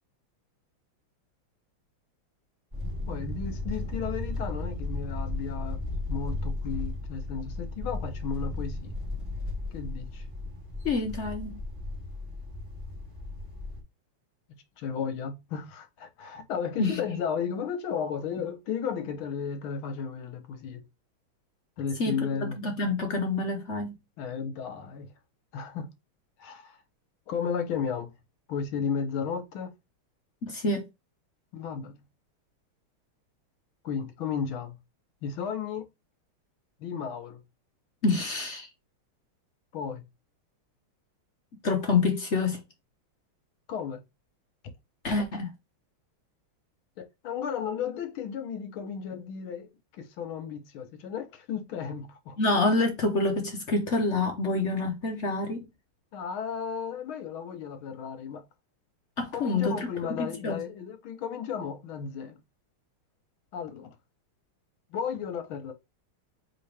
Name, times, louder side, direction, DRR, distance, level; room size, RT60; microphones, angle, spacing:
sound 1, 2.7-13.8, left 2 dB, 15° right, 2.3 m, -35 dB
voice 1, 3.1-5.8 6.1-8.9 9.7-10.3 14.8-20.9 21.8-22.6 24.2-25.1 25.5-25.9 26.4-26.8 27.3-28.1 28.5-29.7 31.5-32.0 33.8-34.8 35.2-35.9 36.8-37.4 39.7-40.0 43.7-44.0 47.0-49.7 50.0-52.4 56.1-58.4 59.3-62.4 63.5-64.0 64.9-65.7, left 7 dB, 75° left, 1.8 m, -34 dB
voice 2, 10.8-11.6 16.8-17.0 22.0-22.2 22.6-23.9 30.4-30.9 38.0-38.7 41.6-42.6 45.0-45.5 52.4-55.6 59.2-59.9 60.2-60.6, left 3 dB, 55° left, 0.8 m, -27 dB
4.2 x 3.8 x 3.3 m
omnidirectional pair, 2.3 m